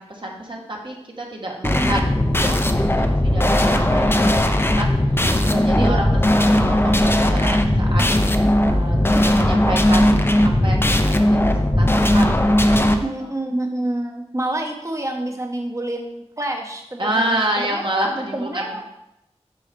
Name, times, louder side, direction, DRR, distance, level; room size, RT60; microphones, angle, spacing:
voice 1, 0.0-2.0 2.4-4.9 5.4-8.1 8.7-9.0 9.2-10.3 10.6-11.5 11.8-13.1 17.0-18.7, right 1 dB, 45° right, -1 dB, 1.4 m, -28 dB
sound 1, 1.6-13.0, left 1 dB, 20° left, 0.6 m, -17 dB
voice 2, 5.7-6.3 13.0-17.8 18.3-18.8, right 1 dB, 25° right, 2 dB, 1.1 m, -27 dB
8.3 x 5.5 x 3.4 m, 0.86 s
wide cardioid pair, 70°, 12 cm